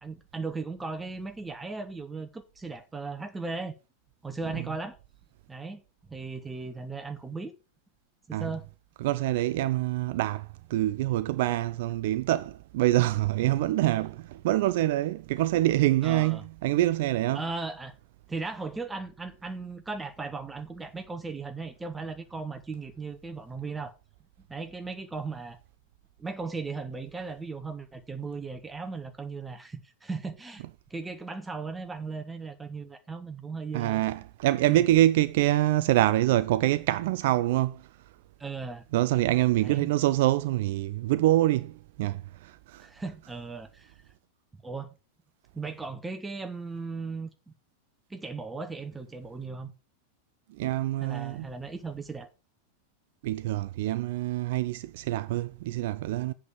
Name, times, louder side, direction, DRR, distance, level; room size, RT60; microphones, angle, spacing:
voice 1, 0.0-3.8 4.2-5.0 5.5-5.8 6.1-7.5 8.3-8.7 16.0-16.4 17.3-17.9 18.3-23.9 24.5-25.6 26.2-30.6 30.9-34.0 34.7-34.8 38.4-38.8 39.6-39.9 42.8-43.9 44.6-44.9 45.5-47.3 48.1-49.7 51.0-52.3, right 4 dB, 10° right, 1.1 m, -37 dB
voice 2, 9.0-17.4 33.7-37.8 38.9-42.9 50.5-51.5 53.2-56.3, right 15 dB, 50° right, 0.4 m, -25 dB
8.4 x 4.9 x 7.2 m
figure-of-eight pair, 90°, 0 cm